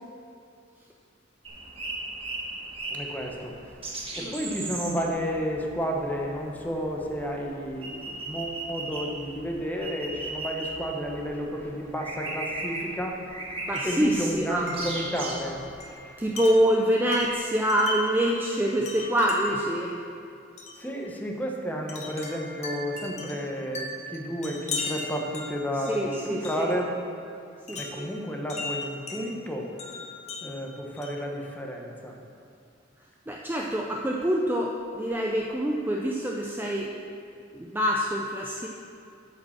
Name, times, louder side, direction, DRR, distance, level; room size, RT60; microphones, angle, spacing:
sound 1, 1.4-15.9, right 2 dB, 30° right, 1.3 m, -38 dB
voice 1, 2.9-3.5 4.2-13.2 13.8-16.1 20.8-26.9 27.7-29.7 30.4-32.2, equal, 10° left, 0 dB, 0.9 m, -32 dB
voice 2, 4.2-4.5 13.7-14.7 16.2-20.0 25.9-26.7 27.7-28.1 33.3-36.9 37.5-38.7, equal, 10° right, -1 dB, 0.4 m, -26 dB
Wind chime, 13.7-14.1 14.7-18.2 18.8-19.7 20.6-20.8 21.9-26.8 27.7-29.2 29.8-31.3, left 3 dB, 35° left, 1.1 m, -38 dB
8.5 x 5.2 x 7.1 m, 2.5 s
head